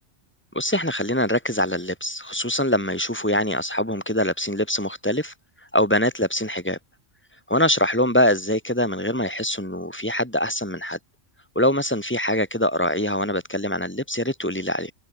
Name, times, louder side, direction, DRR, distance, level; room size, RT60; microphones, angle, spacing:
voice 1, 0.5-5.3 5.7-6.8 7.5-11.0 11.5-14.9, left 1 dB, 10° left, 4.8 m, -23 dB
omnidirectional pair, 1.3 m